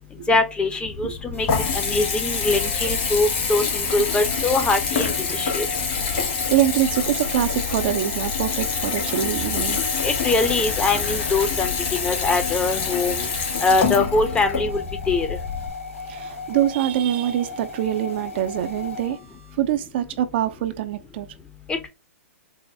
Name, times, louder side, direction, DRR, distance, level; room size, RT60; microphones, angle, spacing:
voice 1, 0.3-1.5 1.7-5.7 10.0-11.7 12.0-13.3 13.6-15.3, left 3 dB, 15° left, 0.7 m, -23 dB
Water tap faucet / Bathtub (filling or washing) / Trickle dribble, 0.8-15.7, left 5 dB, 40° left, 1.8 m, -26 dB
sound 1, 1.3-19.5, left 3 dB, 85° left, 1.7 m, -37 dB
sound 2, 4.8-11.5, left 4 dB, 70° left, 0.9 m, -39 dB
voice 2, 6.0-9.8 16.1-19.2 19.6-21.3, right 12 dB, 50° right, 0.5 m, -24 dB
4.8 x 2.1 x 2.6 m
hypercardioid pair, 120°, 7 cm